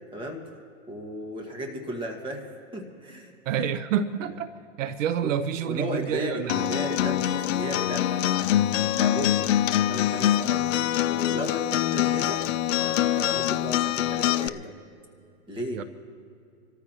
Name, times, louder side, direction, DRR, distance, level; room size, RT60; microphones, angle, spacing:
voice 1, 0.1-0.5 0.9-3.3 5.2-8.2 8.8-10.6 11.0-12.4 12.8-14.7 15.5-15.8, equal, 10° right, 1.8 m, -35 dB
voice 2, 3.5-4.5 4.8-6.7 15.7-15.8, right 8 dB, 75° right, 0.8 m, -28 dB
Acoustic guitar, 6.5-14.5, left 12 dB, 70° left, 0.6 m, -24 dB
27.0 x 14.0 x 2.9 m
hypercardioid pair, 140°, 39 cm